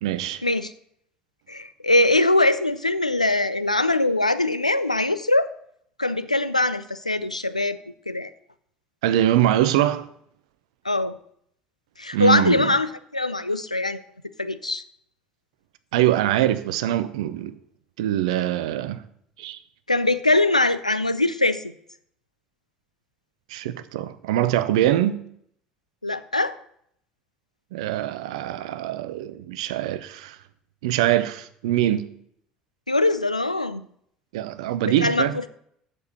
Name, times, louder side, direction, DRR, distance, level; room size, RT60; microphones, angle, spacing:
voice 1, 0.0-0.4 9.0-10.1 12.1-12.7 15.9-17.6 18.0-19.0 19.4-19.6 23.5-25.2 27.7-30.4 30.8-32.1 34.3-35.4, right 12 dB, 65° right, 0.7 m, -23 dB
voice 2, 1.5-5.5 6.0-7.8 8.1-8.3 10.8-11.2 12.0-14.0 14.4-14.8 19.9-21.6 26.0-26.5 32.9-33.8 34.8-35.5, left 2 dB, 90° left, 0.4 m, -22 dB
8.1 x 7.1 x 6.6 m
figure-of-eight pair, 60°, 4 cm